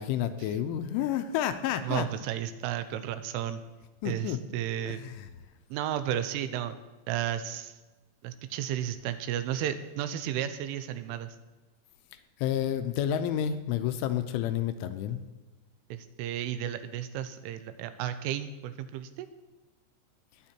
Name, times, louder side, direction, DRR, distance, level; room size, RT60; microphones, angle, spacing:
voice 1, 0.0-2.1 4.0-4.4 4.9-5.3 12.1-15.2, left 10 dB, 80° left, 9 dB, 3.0 m, -30 dB
voice 2, 1.8-3.6 4.1-5.0 5.7-6.8 7.1-7.8 8.2-11.3 15.9-19.3, right 11 dB, 85° right, 11 dB, 3.1 m, -33 dB
21.5 x 8.3 x 4.4 m, 1.1 s
omnidirectional pair, 5.8 m